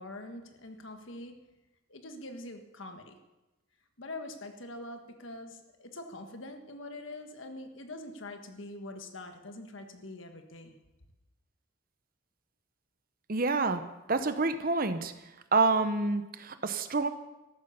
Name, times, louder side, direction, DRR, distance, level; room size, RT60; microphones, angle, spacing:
voice 1, 0.0-1.6 1.9-3.2 4.0-10.8, left 2 dB, 65° left, 6 dB, 1.5 m, -44 dB
voice 2, 13.3-13.8 14.1-15.1 15.5-17.1, right 3 dB, 45° right, 10 dB, 0.8 m, -27 dB
14.0 x 12.0 x 5.7 m, 1.0 s
head